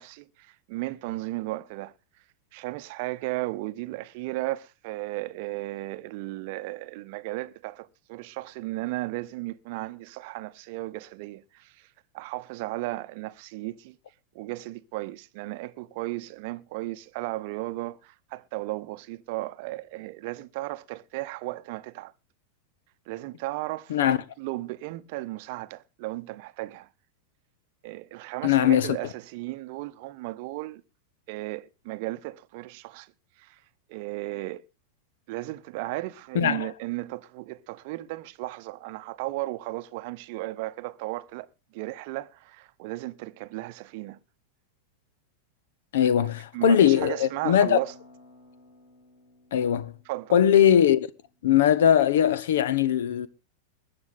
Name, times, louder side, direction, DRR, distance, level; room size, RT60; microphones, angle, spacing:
voice 1, 0.0-1.9 2.5-11.9 12.1-14.0 14.3-22.1 23.1-26.9 27.8-30.8 31.3-33.1 33.4-33.6 33.9-34.6 35.3-41.5 41.7-44.2 46.0-47.9 50.0-50.4, right 19 dB, 50° right, 0.8 m, -35 dB
voice 2, 28.4-29.0 36.3-36.7 45.9-47.8 49.5-49.9 50.3-51.1 51.4-53.3, left 10 dB, 60° left, 1.0 m, -20 dB
sound 1, 47.4-51.2, left 1 dB, 85° left, 7.2 m, -53 dB
21.5 x 8.8 x 3.7 m
figure-of-eight pair, 90°, 0 cm